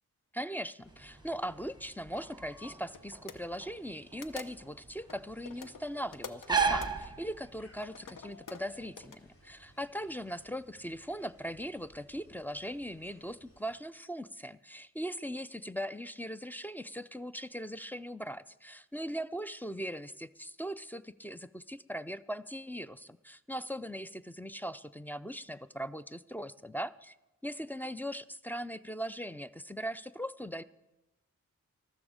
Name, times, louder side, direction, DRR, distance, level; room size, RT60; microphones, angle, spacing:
voice 1, 0.3-27.1 27.4-30.6, equal, 5° left, 9 dB, 0.4 m, -40 dB
sound 1, 0.8-13.8, left 1 dB, 45° left, 2.8 m, -61 dB
sound 2, 0.9-7.8, right 5 dB, 15° right, 1.0 m, -36 dB
sound 3, 1.3-1.5 2.3-2.4 2.8-3.0 3.3-3.4 4.2-4.8 5.1-7.1 7.7-9.2, left 6 dB, 85° left, 0.8 m, -46 dB
13.5 x 13.0 x 5.0 m, 0.99 s
wide cardioid pair, 85°, 31 cm